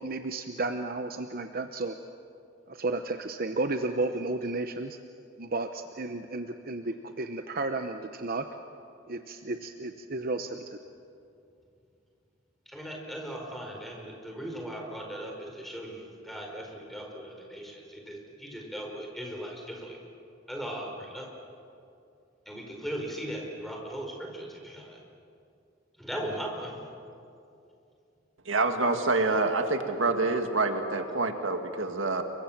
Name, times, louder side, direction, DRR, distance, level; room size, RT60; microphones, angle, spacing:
voice 1, 0.0-2.0 2.7-5.0 5.4-8.5 9.1-10.8, right 2 dB, 50° right, 7 dB, 0.9 m, -33 dB
voice 2, 12.7-20.0 20.5-21.3 22.4-25.0 26.0-26.8, equal, ahead, 0 dB, 4.7 m, -38 dB
voice 3, 28.5-32.2, right 3 dB, 75° right, 6 dB, 2.0 m, -27 dB
29.5 x 23.5 x 7.3 m, 2.6 s
head